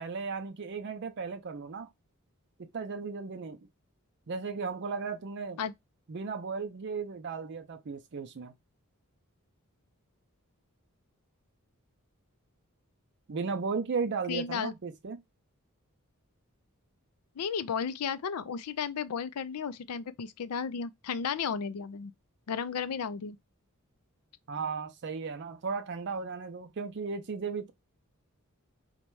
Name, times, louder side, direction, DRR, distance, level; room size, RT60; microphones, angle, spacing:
voice 1, 0.0-1.9 2.6-3.6 4.3-5.6 6.1-8.5 13.3-15.2 24.5-27.7, right 5 dB, 50° right, 0.5 m, -35 dB
voice 2, 14.3-14.7 17.4-22.1 22.5-23.4, left 6 dB, 90° left, 0.4 m, -34 dB
4.0 x 2.2 x 4.5 m
head